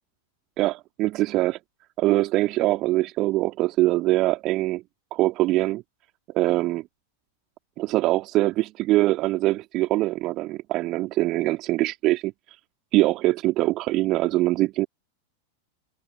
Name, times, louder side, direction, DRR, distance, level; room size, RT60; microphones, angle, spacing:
voice 1, 0.6-1.6 2.0-4.8 5.1-5.8 6.3-6.8 7.8-12.3 12.9-14.9, right 18 dB, 35° right, 2.9 m, -23 dB
figure-of-eight pair, 90°, 0 cm